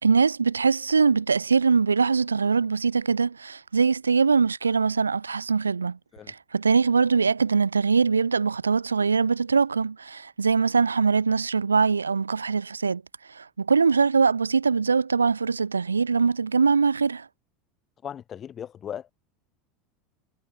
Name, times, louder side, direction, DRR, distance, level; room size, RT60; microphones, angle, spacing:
voice 1, 0.0-6.0 6.3-13.0 13.3-17.3, right 5 dB, 90° right, 1.6 m, -22 dB
voice 2, 18.0-19.1, left 9 dB, 35° left, 4.6 m, -37 dB
hypercardioid pair, 80°, 0 cm